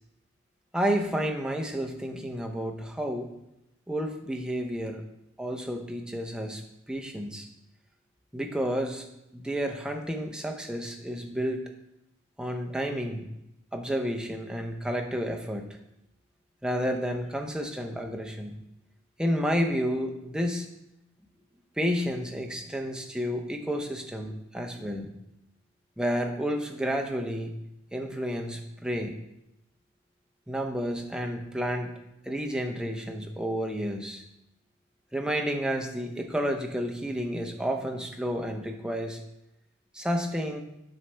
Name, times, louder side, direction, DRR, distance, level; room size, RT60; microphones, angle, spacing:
voice 1, 0.7-3.3 3.9-5.0 5.4-7.5 8.3-9.1 9.3-11.6 12.4-13.3 13.7-15.8 16.6-18.6 19.2-20.7 21.8-25.1 26.0-27.5 27.9-29.2 30.5-31.9 32.2-34.2 35.1-39.2 39.9-40.6, equal, 5° right, 2 dB, 0.5 m, -31 dB
7.6 x 4.2 x 3.3 m, 0.86 s
head